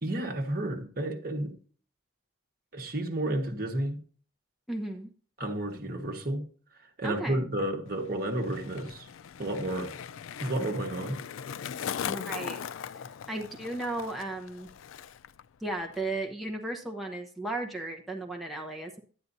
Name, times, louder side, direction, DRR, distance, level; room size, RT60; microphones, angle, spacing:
voice 1, 0.0-1.5 2.7-4.0 5.4-6.5 6.8-9.1 9.4-9.9 10.4-11.2, right 1 dB, 45° right, 1.4 m, -31 dB
voice 2, 4.7-5.1 7.0-7.4 12.1-12.6 13.3-14.7 15.6-19.0, right 2 dB, ahead, 0.9 m, -35 dB
Skateboard, 7.9-15.4 15.7-16.2, left 8 dB, 85° left, 0.4 m, -39 dB
11.0 x 9.5 x 2.7 m
head